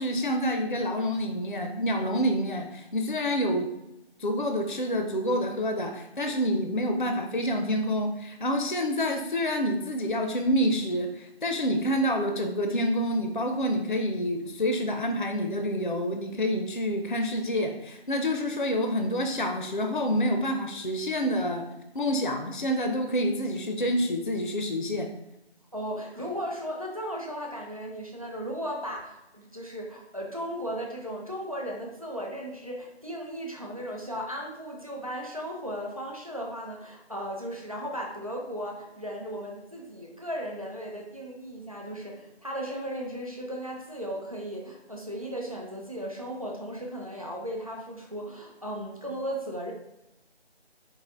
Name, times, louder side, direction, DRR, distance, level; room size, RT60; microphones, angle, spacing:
voice 1, 0.0-3.7 4.2-21.7 21.9-25.1, equal, 50° left, 4 dB, 0.4 m, -27 dB
voice 2, 25.7-49.7, equal, 35° right, -1 dB, 0.6 m, -36 dB
4.7 x 2.4 x 3.7 m, 0.90 s
figure-of-eight pair, 180°, 33 cm